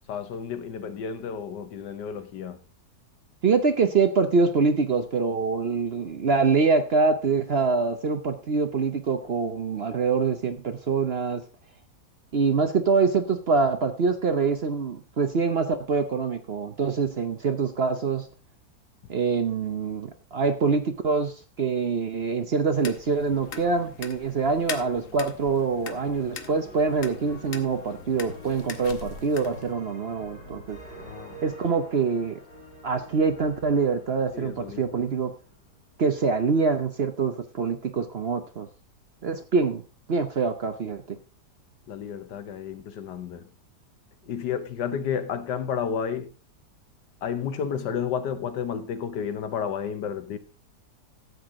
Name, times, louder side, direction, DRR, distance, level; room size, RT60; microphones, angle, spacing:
voice 1, 0.1-2.6 9.2-9.3 31.0-31.4 34.3-34.9 41.9-43.5 44.3-46.3 47.2-50.4, left 7 dB, 85° left, 1.6 m, -31 dB
voice 2, 3.4-11.4 12.3-18.3 19.1-30.8 31.4-32.4 32.8-35.3 36.0-38.7 39.2-39.8 40.1-41.2, right 4 dB, 50° right, 0.9 m, -25 dB
sound 1, 22.7-29.7, left 6 dB, 55° left, 1.3 m, -41 dB
sound 2, 25.8-35.9, right 1 dB, 90° right, 5.2 m, -46 dB
13.0 x 7.9 x 3.7 m
omnidirectional pair, 1.8 m